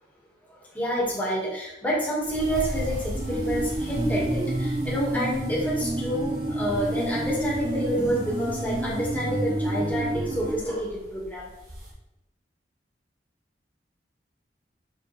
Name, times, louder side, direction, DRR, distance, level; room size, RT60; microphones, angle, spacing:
voice 1, 0.7-11.5, equal, 10° left, -6 dB, 2.6 m, -28 dB
sound 1, 2.2-11.9, equal, 55° right, 2.9 m, -39 dB
sound 2, 3.1-10.6, right 1 dB, 25° right, 0.8 m, -29 dB
6.7 x 6.6 x 3.8 m, 0.91 s
head